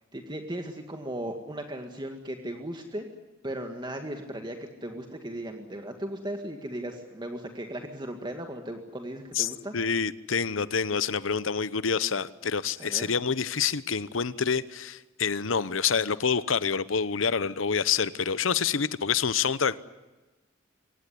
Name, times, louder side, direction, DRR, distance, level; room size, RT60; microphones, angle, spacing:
voice 1, 0.1-3.1 3.4-9.7 12.8-13.1, right 1 dB, 25° right, 4 dB, 1.9 m, -37 dB
voice 2, 9.3-19.8, left 6 dB, 90° left, 16 dB, 0.9 m, -27 dB
24.0 x 19.0 x 10.0 m, 1.2 s
head